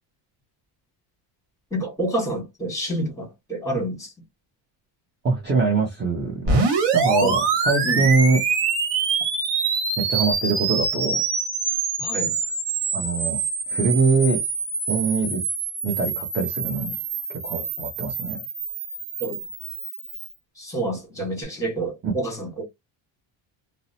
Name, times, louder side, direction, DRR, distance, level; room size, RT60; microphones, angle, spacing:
voice 1, 1.7-4.1 7.2-7.4 7.8-8.1 12.0-12.4 19.2-19.4 20.6-22.6, right 1 dB, 5° left, 1.3 m, -28 dB
voice 2, 5.2-6.6 6.9-8.4 10.0-11.2 12.9-13.4 13.7-14.4 14.9-15.4 15.8-16.9 17.3-18.4 22.0-22.1, right 4 dB, 20° right, 0.6 m, -23 dB
sound 1, 6.5-20.3, right 4 dB, 55° right, 1.2 m, -25 dB
2.7 x 2.0 x 2.6 m
cardioid pair, 130°, 50 cm